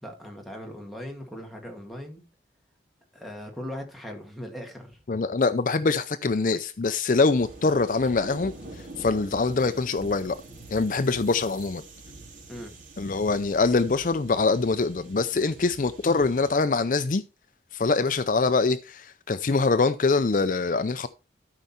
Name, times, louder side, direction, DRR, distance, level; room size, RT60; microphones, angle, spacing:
voice 1, 0.0-2.2 3.1-5.0 12.5-12.7, equal, ahead, 2.1 m, -39 dB
voice 2, 5.1-10.4 10.7-11.8 13.0-17.2 17.7-21.1, left 3 dB, 45° left, 0.5 m, -24 dB
sound 1, 7.3-16.5, right 2 dB, 50° right, 3.8 m, -45 dB
13.0 x 5.4 x 4.3 m
head